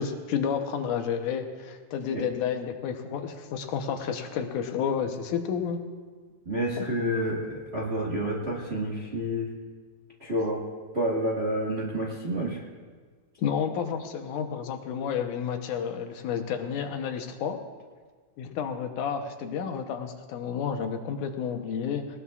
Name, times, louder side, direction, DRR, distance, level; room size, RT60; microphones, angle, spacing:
voice 1, 0.0-5.8 6.8-6.9 13.4-17.6 18.4-22.2, left 7 dB, 80° left, 5 dB, 2.5 m, -31 dB
voice 2, 6.4-9.5 10.2-10.6 10.9-12.6, equal, 40° right, -3 dB, 0.9 m, -29 dB
19.5 x 19.0 x 2.4 m, 1.5 s
omnidirectional pair, 3.5 m